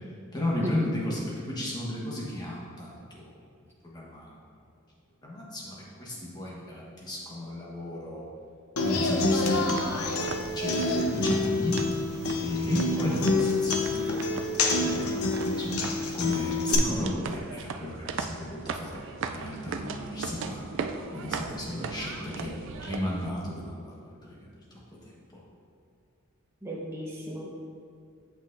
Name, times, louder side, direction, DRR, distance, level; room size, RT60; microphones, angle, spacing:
voice 1, 0.3-3.3 3.8-4.3 5.2-8.3 8.8-11.8 12.4-14.3 14.8-19.0 19.3-20.6 21.1-25.4, left 1 dB, 20° left, -4 dB, 1.2 m, -34 dB
Human voice / Acoustic guitar, 8.8-16.7, left 2 dB, 85° left, 0.7 m, -27 dB
sound 1, 9.2-23.3, right 5 dB, 60° right, 0.3 m, -39 dB
voice 2, 13.0-13.4 26.6-27.5, right 1 dB, 10° right, -3 dB, 0.9 m, -36 dB
7.9 x 6.1 x 2.6 m, 2.5 s
head